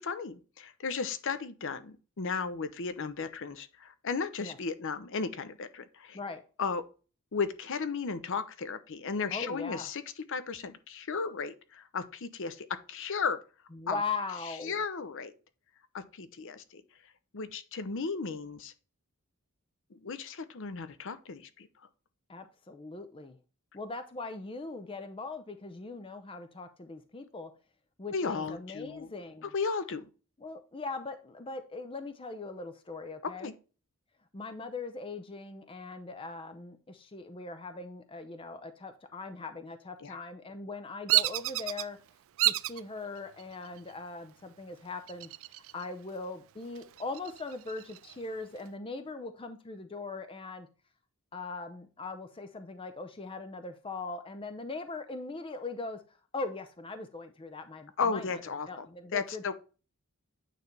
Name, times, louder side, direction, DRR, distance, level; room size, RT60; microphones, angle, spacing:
voice 1, 0.0-6.2 6.6-6.8 7.3-10.0 10.3-13.4 13.9-14.0 14.5-15.3 15.9-16.8 17.3-18.7 19.9-21.7 28.1-29.1 29.5-30.1 33.2-33.5 40.0-40.2 58.0-58.9 59.1-59.5, left 5 dB, 60° left, 0.7 m, -35 dB
voice 2, 9.3-9.9 13.7-14.8 22.3-23.4 23.7-27.5 28.0-29.5 30.4-33.5 34.3-42.0 42.4-45.3 45.7-50.7 51.3-56.0 56.3-58.4 58.7-59.4, left 3 dB, 25° left, 0.5 m, -40 dB
Bird vocalization bird call bird song, 41.1-41.9 42.4-42.8 43.4-43.9 45.1-45.8 46.2-46.3 46.8-48.2, right 16 dB, 60° right, 0.3 m, -29 dB
9.1 x 3.3 x 3.9 m
head